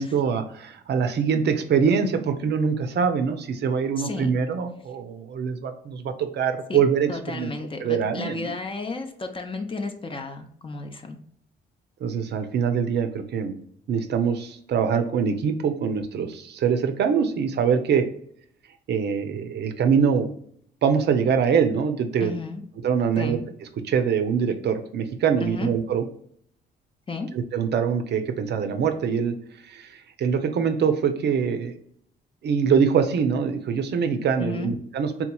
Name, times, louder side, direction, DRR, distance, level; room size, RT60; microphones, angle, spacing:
voice 1, 0.0-7.5 7.8-8.6 12.0-13.5 13.9-18.0 18.9-20.3 20.8-22.3 22.8-23.4 23.9-26.0 27.3-29.3 29.6-31.7 32.4-35.3, right 6 dB, 60° right, 8 dB, 0.5 m, -24 dB
voice 2, 4.0-4.3 6.7-6.8 7.1-11.2 22.2-22.6 23.2-23.4 25.4-25.7 27.1-27.3 34.4-34.7, left 3 dB, 25° left, 5 dB, 0.6 m, -33 dB
3.6 x 2.9 x 2.2 m, 0.65 s
cardioid pair, 90°, 20 cm